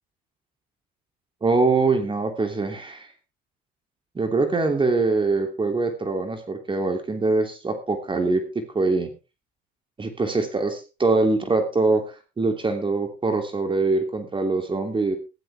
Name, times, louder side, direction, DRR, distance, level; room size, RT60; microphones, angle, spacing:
voice 1, 1.4-3.1 4.1-9.1 10.0-15.2, right 3 dB, 25° right, 6 dB, 3.0 m, -23 dB
16.0 x 12.5 x 3.5 m, 0.29 s
supercardioid pair, 90°, 20 cm